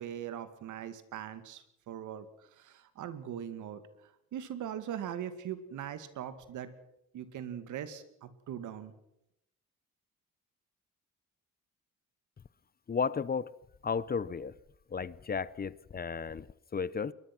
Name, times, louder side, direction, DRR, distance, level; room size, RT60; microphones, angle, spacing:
voice 1, 0.0-2.3 2.6-3.8 4.3-6.7 7.1-8.9, right 9 dB, 80° right, 2.3 m, -40 dB
voice 2, 12.9-13.5 13.8-14.5 14.9-16.5 16.7-17.1, left 5 dB, 30° left, 0.8 m, -33 dB
22.0 x 21.0 x 6.1 m
cardioid pair, 90°, 30 cm